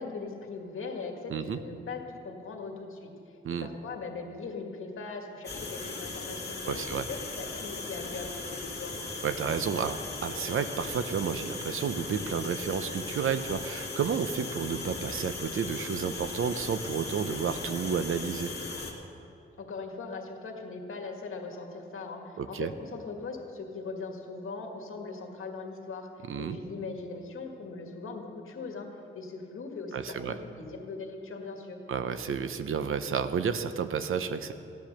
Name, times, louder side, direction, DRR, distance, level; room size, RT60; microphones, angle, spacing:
voice 1, 0.0-3.1 3.6-9.0 19.6-26.1 26.4-28.9 29.1-31.8, left 4 dB, 75° left, 2 dB, 1.8 m, -40 dB
sound 1, 5.4-18.9, left 3 dB, 50° left, 2.1 m, -38 dB
voice 2, 6.7-7.1 9.2-18.5 22.4-22.7 26.3-26.6 29.9-30.4 31.9-34.5, right 7 dB, 75° right, 10 dB, 0.8 m, -31 dB
15.5 x 10.5 x 6.6 m, 3.0 s
wide cardioid pair, 140°, 21 cm